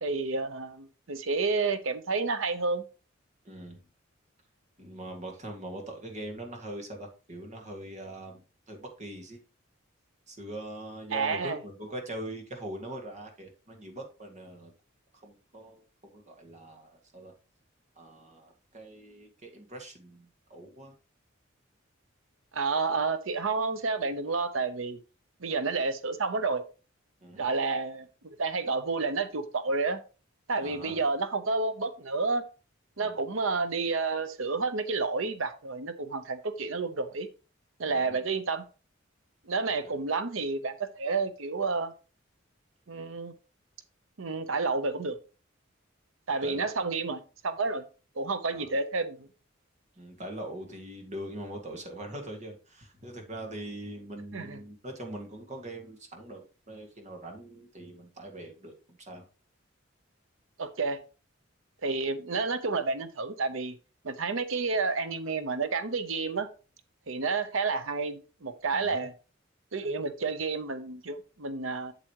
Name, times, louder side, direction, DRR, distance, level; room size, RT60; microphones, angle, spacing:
voice 1, 0.0-2.8 11.1-11.6 22.5-25.0 25.4-26.6 27.3-30.0 30.5-32.4 33.0-37.3 37.8-38.7 39.5-41.9 42.9-43.3 44.2-45.2 46.3-47.8 48.2-49.2 54.3-54.6 60.6-61.0 61.8-63.7 64.0-66.5 67.1-69.1 69.7-71.9, right 4 dB, 80° right, 11 dB, 0.9 m, -30 dB
voice 2, 3.4-3.8 4.8-9.4 10.3-14.7 15.2-17.3 18.0-21.0 27.2-27.5 30.6-31.0 33.0-33.2 37.8-38.2 39.6-39.7 46.4-46.7 48.5-48.7 50.0-59.3 68.7-69.1, right 1 dB, 35° right, 2 dB, 2.0 m, -42 dB
8.1 x 7.7 x 3.0 m, 0.33 s
head